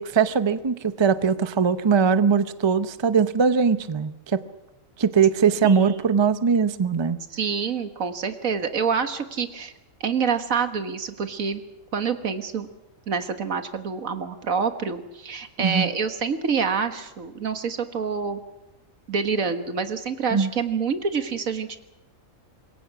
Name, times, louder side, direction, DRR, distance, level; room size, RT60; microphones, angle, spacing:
voice 1, 0.0-4.4 5.0-7.2 15.6-15.9 20.3-20.5, right 6 dB, 25° right, 12 dB, 0.7 m, -21 dB
voice 2, 5.6-6.0 7.3-9.7 10.0-11.6 11.9-12.7 13.1-18.4 19.1-21.8, right 5 dB, 85° right, 8 dB, 1.9 m, -27 dB
26.0 x 22.0 x 6.1 m, 0.94 s
omnidirectional pair, 1.4 m